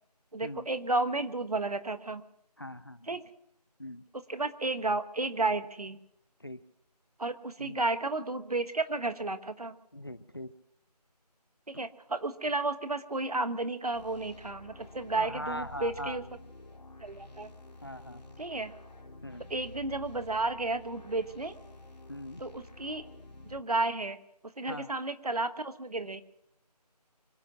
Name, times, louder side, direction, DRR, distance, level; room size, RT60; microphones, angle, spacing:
voice 1, 0.3-2.2 3.1-3.2 4.3-6.0 7.2-9.7 11.7-16.2 17.0-17.5 18.4-18.7 19.5-21.5 22.4-23.1 23.5-24.2 24.6-26.2, right 2 dB, 65° right, 11 dB, 1.3 m, -32 dB
voice 2, 2.6-3.2 3.8-4.0 6.4-6.6 7.6-7.8 9.9-10.5 15.1-16.2 17.8-18.2 19.2-19.5 22.1-22.4 24.7-24.9, left 1 dB, 35° left, 16 dB, 0.5 m, -41 dB
sound 1, 13.9-23.6, left 2 dB, 75° left, 2.5 m, -50 dB
25.0 x 8.9 x 6.1 m, 0.73 s
figure-of-eight pair, 175°, 21 cm